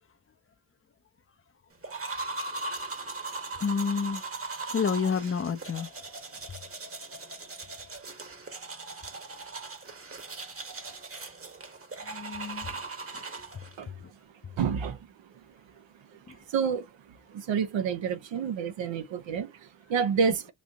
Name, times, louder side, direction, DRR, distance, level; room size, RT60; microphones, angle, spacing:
sound 1, 1.8-13.8, right 3 dB, 30° right, 1.1 m, -39 dB
voice 1, 3.6-4.2 4.7-5.9 6.5-6.6 12.0-12.7 13.5-14.1 14.4-14.5 16.3-16.4, left 6 dB, 30° left, 0.6 m, -30 dB
voice 2, 14.5-15.1 15.3-15.4 15.8-15.9 16.1-20.5, right 6 dB, 70° right, 0.8 m, -30 dB
3.1 x 2.6 x 3.5 m
cardioid pair, 60°, 47 cm